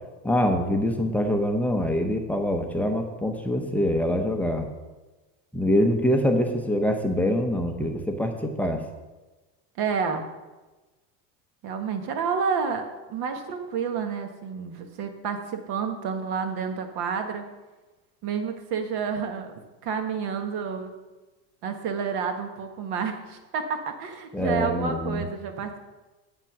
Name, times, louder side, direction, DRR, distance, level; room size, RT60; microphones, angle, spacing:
voice 1, 0.2-4.7 5.5-8.8 24.3-25.2, equal, 5° left, 4 dB, 0.7 m, -24 dB
voice 2, 9.8-10.2 11.6-17.4 18.2-19.5 19.8-20.9 21.6-25.8, right 6 dB, 50° right, 6 dB, 1.4 m, -29 dB
8.3 x 5.8 x 5.9 m, 1.2 s
supercardioid pair, 135°, 49 cm